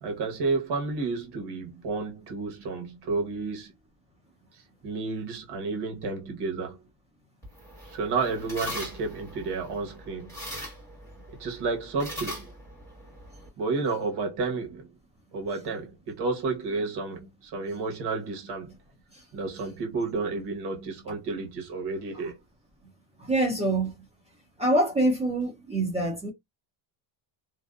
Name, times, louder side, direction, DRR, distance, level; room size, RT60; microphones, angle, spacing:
voice 1, 0.0-3.7 4.5-6.8 7.9-10.4 11.4-12.5 13.6-14.9 15.3-18.7 19.3-22.4, right 4 dB, 55° right, 1.1 m, -31 dB
sound 1, 7.4-13.5, left 1 dB, 5° left, 1.3 m, -41 dB
voice 2, 23.2-24.0 24.6-26.3, right 1 dB, 15° right, 0.4 m, -25 dB
2.6 x 2.2 x 2.3 m
cardioid pair, 175°, 49 cm